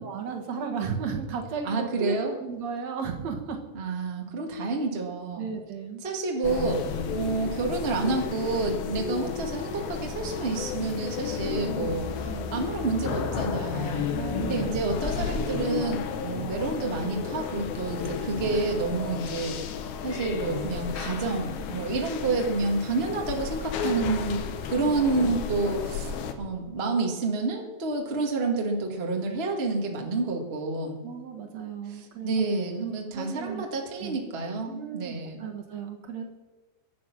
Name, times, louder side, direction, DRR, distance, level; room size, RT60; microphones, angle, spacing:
voice 1, 0.0-3.6 4.5-4.8 5.4-6.0 11.4-11.9 12.3-12.6 14.1-14.8 24.4-25.0 31.0-32.5 33.1-33.7 34.0-34.2 34.7-36.2, right 6 dB, 55° right, 2 dB, 2.2 m, -35 dB
voice 2, 1.6-2.3 3.7-5.4 6.0-14.1 14.4-19.5 20.0-31.0 31.9-35.4, right 3 dB, 90° right, 1 dB, 0.5 m, -29 dB
sound 1, 6.4-26.3, left 6 dB, 90° left, 3.3 m, -32 dB
22.5 x 9.3 x 6.0 m, 1.2 s
omnidirectional pair, 4.8 m